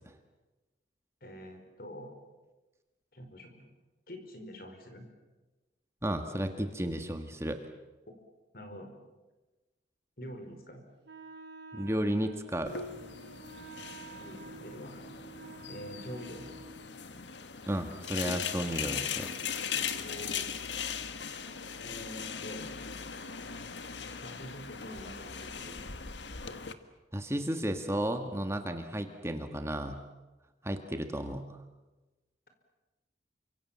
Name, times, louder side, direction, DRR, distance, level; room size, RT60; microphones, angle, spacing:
voice 1, 1.2-2.1 3.1-3.7 4.1-5.0 8.0-8.2 8.5-8.9 10.2-10.8 14.2-15.0 15.7-16.5 20.0-20.6 21.8-22.7 24.2-25.8, equal, 55° left, 6 dB, 5.0 m, -45 dB
voice 2, 6.0-7.6 11.7-12.7 17.7-19.3 19.8-19.9 27.1-30.0 30.6-31.6, right 1 dB, 15° right, 6 dB, 1.6 m, -33 dB
Wind instrument woodwind instrument, 11.0-16.9, right 3 dB, 90° right, 4.9 m, -50 dB
sound 1, 12.7-26.7, left 7 dB, 85° left, 1.6 m, -39 dB
29.0 x 25.5 x 7.5 m, 1.2 s
head